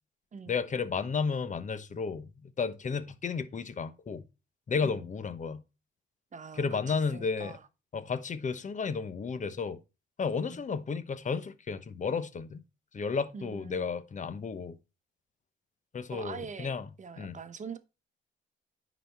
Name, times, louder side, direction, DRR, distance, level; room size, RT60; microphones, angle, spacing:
voice 1, 0.5-4.2 4.7-5.6 6.6-7.5 7.9-9.8 10.2-12.6 12.9-14.8 15.9-16.8 17.2-17.4, left 5 dB, 40° left, 1.0 m, -33 dB
voice 2, 6.3-7.7 10.4-10.6 13.3-13.9 16.1-17.8, right 6 dB, 40° right, 1.0 m, -44 dB
10.0 x 4.2 x 4.5 m
cardioid pair, 90°, 20 cm